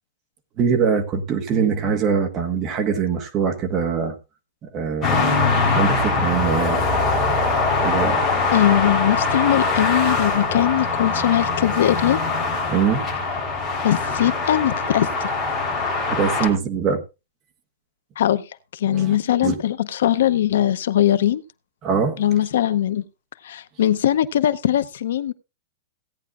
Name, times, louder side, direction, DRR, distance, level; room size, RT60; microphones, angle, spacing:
voice 1, 0.6-4.2 4.7-6.9 7.2-7.4 7.8-8.2 12.7-13.1 16.1-17.0 18.8-19.2 19.4-19.5 21.8-22.3, right 6 dB, 20° right, 1.3 m, -23 dB
sound 1, 5.0-16.5, left 3 dB, 10° left, 3.6 m, -22 dB
voice 2, 8.5-12.2 13.8-15.3 18.2-18.4 18.7-21.4 22.2-23.0 23.4-25.3, left 11 dB, 75° left, 0.7 m, -20 dB
17.0 x 9.5 x 2.4 m
supercardioid pair, 170°, 0 cm